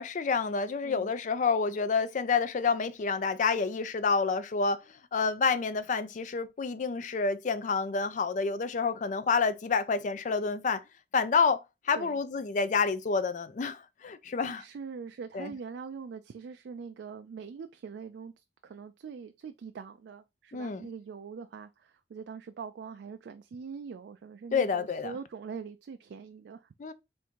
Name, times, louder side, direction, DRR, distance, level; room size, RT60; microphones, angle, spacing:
voice 1, 0.0-4.8 5.1-10.8 11.1-14.6 15.3-15.5 20.5-20.9 24.5-25.1 26.8-26.9, left 5 dB, 45° left, 0.4 m, -28 dB
voice 2, 14.6-18.3 18.6-26.7, right 5 dB, 65° right, 0.3 m, -43 dB
3.5 x 2.6 x 4.4 m
head